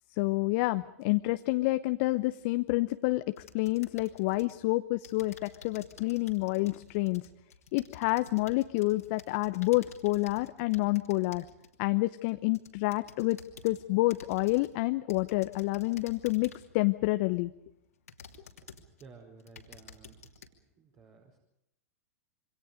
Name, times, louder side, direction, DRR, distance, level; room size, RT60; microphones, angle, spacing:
voice 1, 0.2-3.2 3.5-7.2 7.7-11.4 11.8-13.4 13.6-17.5, left 21 dB, 50° left, 10 dB, 0.8 m, -28 dB
sound 1, 3.4-4.6 5.0-11.8 12.3-13.8 14.1-14.7 15.1-16.8 17.4-17.5 18.1-19.0 19.4-20.5, left 5 dB, 80° left, 2.8 m, -52 dB
voice 2, 19.0-20.3 20.7-21.4, right 5 dB, 35° right, 1 dB, 4.8 m, -54 dB
27.0 x 25.0 x 5.2 m, 0.84 s
figure-of-eight pair, 100°, 8 cm